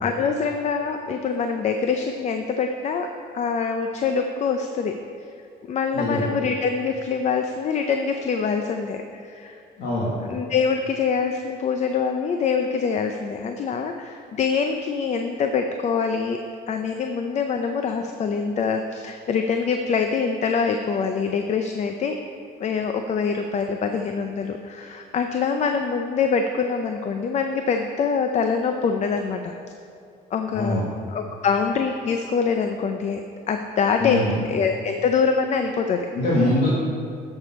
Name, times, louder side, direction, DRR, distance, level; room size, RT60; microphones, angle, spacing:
voice 1, 0.0-3.1 3.3-4.9 5.7-9.6 10.2-16.4 16.7-22.2 22.6-29.5 30.3-30.8 31.1-33.2 33.5-36.1, left 5 dB, 45° left, 5 dB, 0.5 m, -24 dB
voice 2, 9.8-10.1 30.5-30.8 34.0-34.3 36.1-36.7, left 1 dB, 75° left, -7 dB, 1.9 m, -23 dB
10.5 x 6.9 x 4.3 m, 2.5 s
cardioid pair, 110°, 17 cm